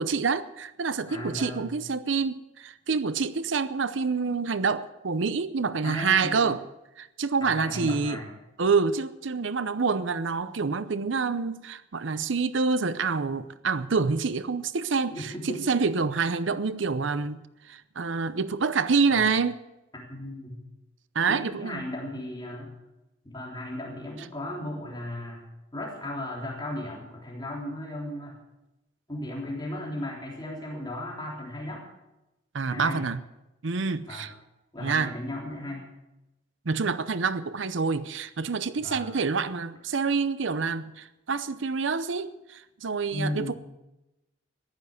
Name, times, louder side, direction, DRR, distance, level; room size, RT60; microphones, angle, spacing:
voice 1, 0.0-6.6 7.0-8.2 8.6-19.6 21.1-21.8 32.5-33.2 33.6-34.3 34.8-35.1 36.7-43.5, right 4 dB, 70° right, 14 dB, 0.7 m, -27 dB
voice 2, 1.1-1.8 5.8-6.5 7.4-8.3 15.1-15.6 19.1-19.2 19.9-20.6 21.3-22.7 23.2-25.5 25.7-28.4 29.1-31.8 32.7-33.0 34.1-34.3 34.7-35.9 38.8-39.1 43.1-43.6, left 1 dB, 20° left, -3 dB, 3.5 m, -36 dB
14.5 x 11.0 x 8.1 m, 0.96 s
head